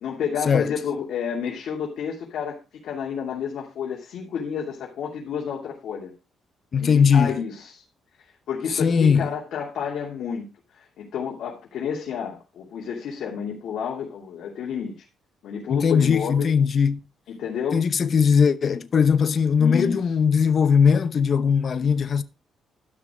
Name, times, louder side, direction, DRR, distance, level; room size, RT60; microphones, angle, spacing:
voice 1, 0.0-6.1 6.8-7.8 8.5-10.4 10.7-14.9 15.4-16.5 17.3-17.8 19.6-20.0, left 7 dB, 70° left, 2.9 m, -30 dB
voice 2, 6.7-7.4 8.8-9.3 15.7-17.0 17.7-22.2, left 6 dB, 45° left, 0.8 m, -19 dB
12.5 x 6.1 x 4.9 m
cardioid pair, 90°, 0 cm